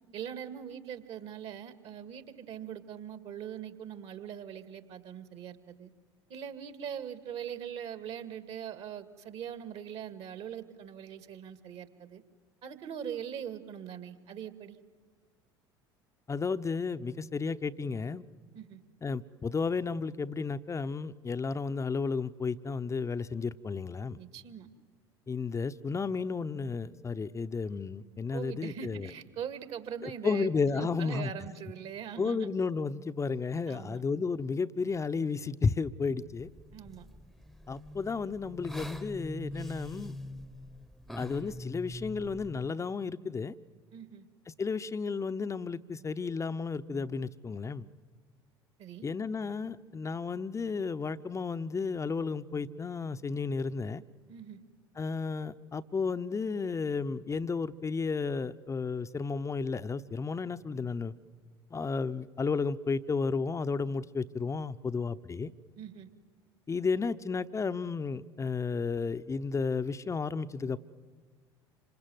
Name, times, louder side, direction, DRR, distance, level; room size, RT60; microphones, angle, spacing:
voice 1, 0.1-5.9 6.3-12.2 12.6-14.8 18.5-18.8 24.2-24.7 28.3-32.5 33.7-34.0 36.7-37.1 43.9-44.3 48.8-49.1 54.3-54.6 65.8-66.1, right 9 dB, 50° right, 11 dB, 2.1 m, -42 dB
voice 2, 16.3-18.2 19.0-24.2 25.3-29.1 30.0-31.3 32.2-36.5 37.7-40.1 41.2-43.5 44.6-47.8 49.0-54.0 55.0-61.1 61.7-65.5 66.7-70.8, left 4 dB, 20° left, 13 dB, 0.8 m, -33 dB
sound 1, 36.4-42.7, equal, ahead, 1.1 m, -44 dB
27.0 x 26.0 x 8.0 m, 1.5 s
figure-of-eight pair, 65°, 13 cm